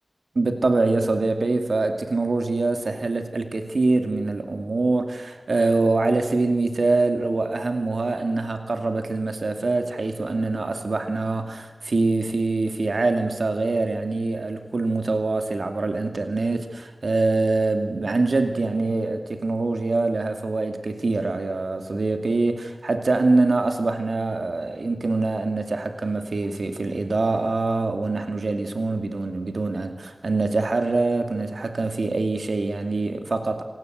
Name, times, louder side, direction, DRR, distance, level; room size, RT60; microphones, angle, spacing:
voice 1, 0.3-33.6, right 3 dB, 85° right, 6 dB, 2.3 m, -24 dB
27.5 x 18.5 x 8.0 m, 1.2 s
wide cardioid pair, 75°, 0 cm